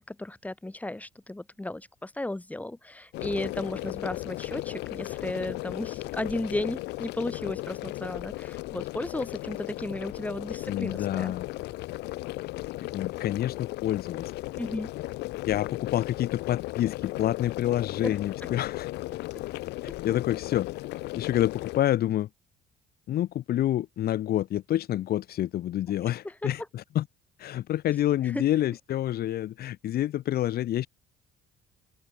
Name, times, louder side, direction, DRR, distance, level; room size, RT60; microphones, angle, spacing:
voice 1, 0.0-11.3 14.6-14.9 18.0-18.1 26.4-26.5 28.3-28.4, left 1 dB, 10° left, 1.8 m, -34 dB
sound 1, 3.1-21.8, left 19 dB, 85° left, 2.2 m, -36 dB
voice 2, 10.7-11.5 12.9-14.3 15.5-18.9 19.8-20.7 21.1-22.3 23.1-27.1 27.4-30.9, left 12 dB, 65° left, 5.2 m, -28 dB
open air
cardioid pair, 110°, 17 cm